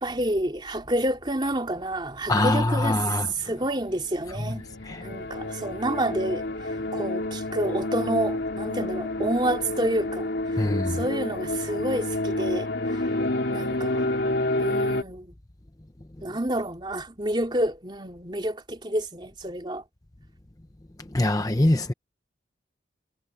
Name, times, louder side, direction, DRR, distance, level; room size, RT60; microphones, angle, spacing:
voice 1, 0.0-3.0 3.3-4.7 5.0-10.3 10.9-13.0 13.5-14.1 14.6-15.3 16.2-19.8, right 1 dB, 25° right, 3.2 m, -29 dB
voice 2, 2.3-3.3 4.9-5.1 10.6-11.0 21.1-21.9, left 1 dB, 20° left, 0.7 m, -23 dB
sound 1, 3.8-15.0, left 2 dB, 65° left, 2.9 m, -29 dB
head